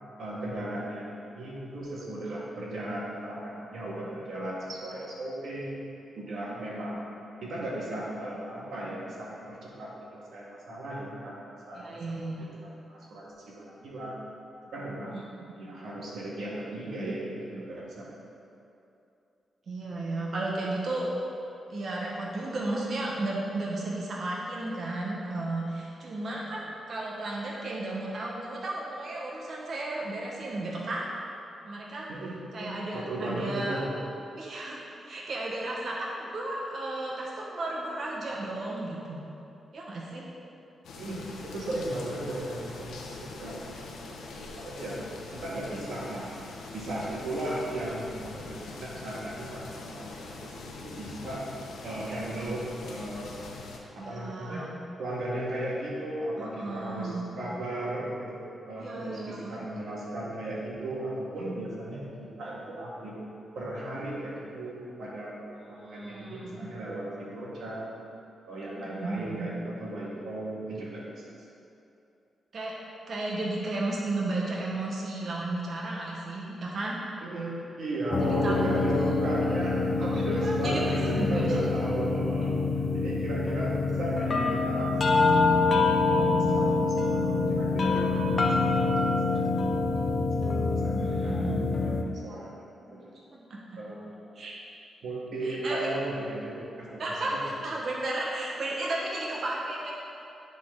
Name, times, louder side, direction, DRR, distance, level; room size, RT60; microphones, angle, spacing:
voice 1, 0.2-5.7 6.1-7.1 7.4-12.0 12.6-14.2 14.7-15.2 15.5-18.2 32.1-34.0 40.9-43.6 44.1-45.0 45.3-46.3 46.7-51.4 51.8-53.4 53.9-54.7 55.0-63.1 63.5-67.9 68.5-71.2 77.2-82.6 82.9-88.2 88.6-89.5 89.8-89.9 90.4-91.6 92.2-92.5 92.9-93.1 93.8-94.3 95.0-97.4, right 1 dB, 75° right, -5 dB, 1.6 m, -36 dB
voice 2, 11.7-12.5 15.1-15.2 19.7-21.1 21.7-31.0 31.6-32.1 32.5-33.8 34.4-39.2 39.7-40.2 54.0-54.7 56.4-57.2 58.8-59.5 65.8-66.7 68.8-69.5 72.5-72.8 73.1-77.0 78.2-79.1 80.0-81.5 86.1-86.9 90.9-91.6 93.3-93.6 94.3-94.5 95.4-95.9 97.0-97.3 97.6-99.9, right 2 dB, 55° right, -4 dB, 1.1 m, -34 dB
sound 1, 40.8-53.8, left 3 dB, 90° left, 0.8 m, -43 dB
sound 2, 78.1-92.0, left 3 dB, 45° left, 0.7 m, -26 dB
10.0 x 4.1 x 3.8 m, 2.7 s
cardioid pair, 80°, 0 cm